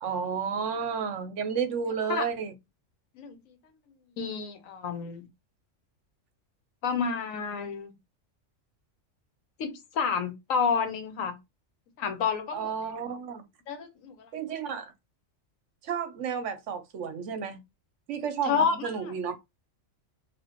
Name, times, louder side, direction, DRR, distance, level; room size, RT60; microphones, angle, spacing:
voice 1, 0.0-2.5 12.5-13.4 14.3-14.9 15.8-17.6 18.1-19.4, right 6 dB, 70° right, 1.0 m, -32 dB
voice 2, 4.2-5.3 6.8-7.9 9.6-11.4 12.0-12.7 13.7-14.3 18.4-19.1, left 6 dB, 85° left, 1.2 m, -29 dB
4.2 x 2.7 x 3.0 m
omnidirectional pair, 1.3 m